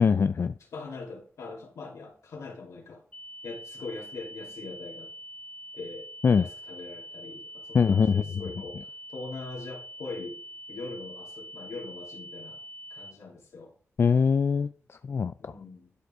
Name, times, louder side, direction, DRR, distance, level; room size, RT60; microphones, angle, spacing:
voice 1, 0.0-0.5 6.2-6.5 7.7-8.2 14.0-15.5, left 5 dB, 55° left, 0.4 m, -23 dB
voice 2, 0.7-3.0 3.4-5.1 5.7-6.1 6.4-10.4 10.7-12.6 12.9-13.7 15.4-15.9, left 3 dB, 85° left, 3.1 m, -41 dB
sound 1, 3.1-13.1, equal, 25° left, 1.3 m, -44 dB
11.5 x 5.3 x 3.7 m
cardioid pair, 65°, 5 cm